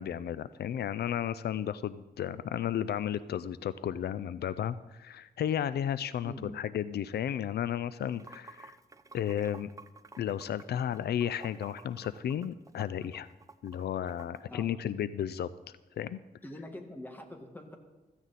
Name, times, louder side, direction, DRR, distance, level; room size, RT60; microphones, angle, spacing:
voice 1, 0.0-8.8 9.1-9.7 10.2-13.3 13.6-15.5 15.9-16.2, left 10 dB, 80° left, 16 dB, 0.4 m, -33 dB
voice 2, 6.2-6.6 14.5-14.9 16.4-17.8, left 1 dB, 10° left, 5 dB, 1.6 m, -44 dB
Water / Sink (filling or washing), 7.9-14.4, right 4 dB, 20° right, 0.5 m, -53 dB
15.5 x 14.5 x 4.1 m, 1.1 s
wide cardioid pair, 140°, 16 cm